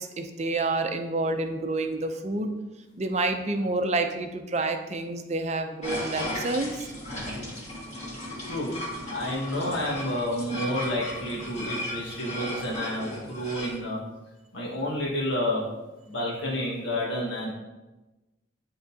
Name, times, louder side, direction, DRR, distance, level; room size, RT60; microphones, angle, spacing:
voice 1, 0.0-2.5 3.0-6.9, right 2 dB, 35° right, 6 dB, 0.5 m, -28 dB
sound 1, 5.8-13.8, left 1 dB, 35° left, 1.7 m, -36 dB
voice 2, 9.1-14.0 14.5-15.7 16.1-17.5, left 1 dB, 80° left, -6 dB, 1.5 m, -30 dB
10.5 x 3.7 x 2.8 m, 1.1 s
head